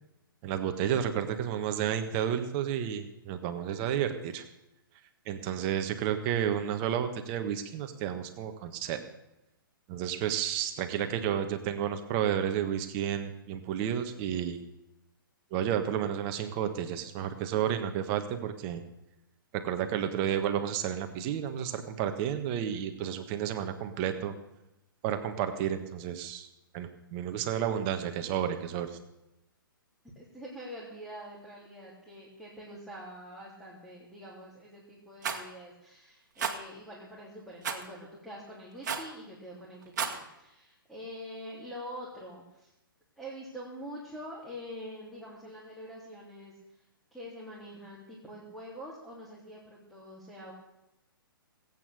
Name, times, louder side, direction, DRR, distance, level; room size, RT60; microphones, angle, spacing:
voice 1, 0.4-4.4 5.3-9.0 9.9-14.6 15.5-18.8 19.5-24.3 25.0-26.5 26.7-28.9, right 9 dB, 30° right, 8 dB, 1.5 m, -31 dB
voice 2, 30.2-42.7 43.2-46.5 47.1-50.5, equal, ahead, -6 dB, 3.3 m, -45 dB
Rattle, 35.2-35.4 36.4-36.6 37.6-37.9 38.8-39.1 39.8-40.2, right 6 dB, 50° right, 1.9 m, -32 dB
19.0 x 8.8 x 6.9 m, 0.91 s
figure-of-eight pair, 120°, 12 cm